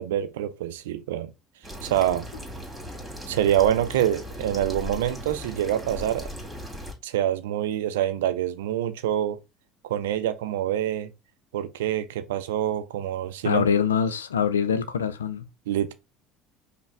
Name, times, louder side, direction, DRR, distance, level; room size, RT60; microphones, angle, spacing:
voice 1, 0.0-1.3 1.8-2.3 3.3-6.3 7.0-9.4 9.8-11.1 11.5-13.7 15.7-15.9, right 11 dB, 75° right, 0.5 m, -26 dB
sound 1, 1.6-6.9, equal, 10° right, 2.0 m, -38 dB
voice 2, 13.4-15.5, left 7 dB, 85° left, 0.4 m, -24 dB
5.4 x 2.2 x 3.3 m
hypercardioid pair, 65°, 0 cm